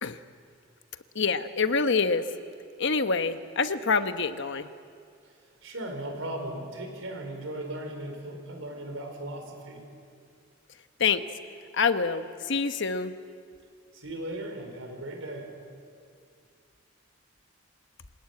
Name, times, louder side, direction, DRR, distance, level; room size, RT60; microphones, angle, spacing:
voice 1, 1.1-2.2 2.8-4.7 11.0-11.2 11.7-13.1, left 5 dB, 60° left, 10 dB, 1.0 m, -26 dB
voice 2, 5.6-9.8 13.9-15.5, right 1 dB, 80° right, 4 dB, 4.8 m, -37 dB
25.5 x 18.0 x 9.6 m, 2.3 s
head